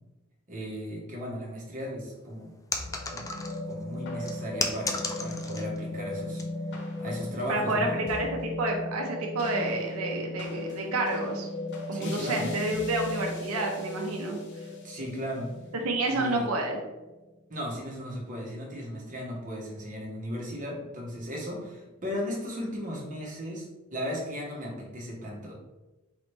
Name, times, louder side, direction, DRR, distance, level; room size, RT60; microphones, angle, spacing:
voice 1, 0.5-2.5 3.1-3.2 3.6-6.4 7.0-8.0 11.9-12.5 14.8-15.5 16.1-16.5 17.5-23.6 23.9-25.5, equal, 40° right, -3 dB, 1.2 m, -36 dB
sound 1, 2.7-17.2, left 2 dB, 55° left, 0.6 m, -37 dB
sound 2, 2.7-3.7 4.3-5.8 6.1-6.5 7.1-7.3, left 3 dB, 15° left, 0.3 m, -33 dB
voice 2, 7.5-11.5 11.9-14.4 15.7-16.8, right 2 dB, 90° right, 1 dB, 0.6 m, -29 dB
4.0 x 3.1 x 3.2 m, 1.1 s
head